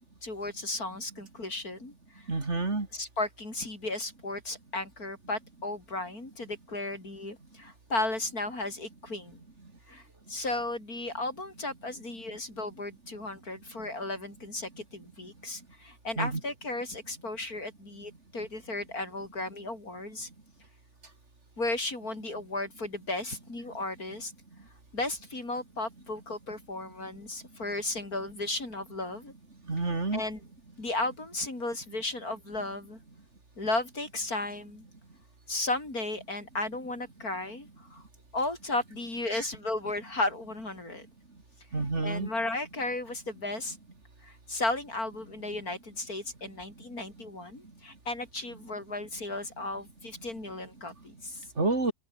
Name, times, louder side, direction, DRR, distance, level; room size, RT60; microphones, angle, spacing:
voice 1, 0.2-2.2 2.9-9.4 9.9-20.3 21.6-24.3 24.9-29.3 30.1-30.4 30.8-33.0 33.6-34.9 35.5-38.0 38.3-41.0 42.0-43.8 44.2-51.4, left 2 dB, 90° left, 6.9 m, -35 dB
voice 2, 2.3-2.9 16.2-16.3 29.7-30.2 41.7-42.3 51.6-51.9, right 3 dB, 50° right, 3.4 m, -28 dB
open air
omnidirectional pair, 1.5 m